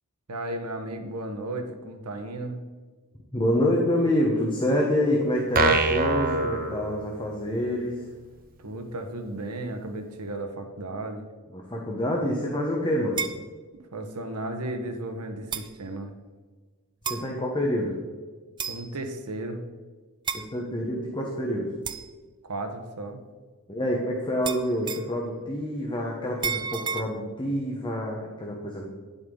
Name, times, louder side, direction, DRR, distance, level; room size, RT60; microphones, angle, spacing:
voice 1, 0.3-2.6 8.6-11.3 13.9-16.1 18.6-19.6 22.4-23.3, right 2 dB, 85° right, 5 dB, 1.1 m, -34 dB
voice 2, 3.3-8.1 11.5-13.3 17.1-18.0 20.5-21.7 23.7-28.8, left 1 dB, 20° left, -1 dB, 1.1 m, -27 dB
sound 1, 5.5-7.5, right 3 dB, 40° right, 0.8 m, -25 dB
sound 2, 13.2-13.4 14.5-14.6 15.5-15.7 17.0-17.3 18.6-18.9 20.3-20.5 21.9-22.1 24.5-25.2 26.4-27.0, right 6 dB, 20° right, 0.4 m, -31 dB
10.5 x 7.8 x 3.9 m, 1.4 s
head